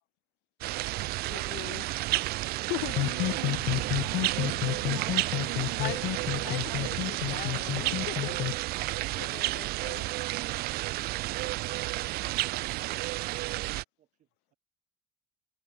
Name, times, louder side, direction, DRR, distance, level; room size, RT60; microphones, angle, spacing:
sound 1, 0.6-13.8, right 19 dB, 65° right, 0.7 m, -31 dB
voice 1, 1.2-1.9 2.7-2.9 5.8-6.0 6.4-8.5 9.2-10.0, left 27 dB, 85° left, 0.5 m, -39 dB
voice 2, 2.5-5.8 6.4-7.1, right 26 dB, 85° right, 1.0 m, -44 dB
sound 2, 2.9-8.5, left 17 dB, 60° left, 0.9 m, -31 dB
voice 3, 14.0-14.6, right 12 dB, 45° right, 2.3 m, -63 dB
cardioid pair, 145°, 17 cm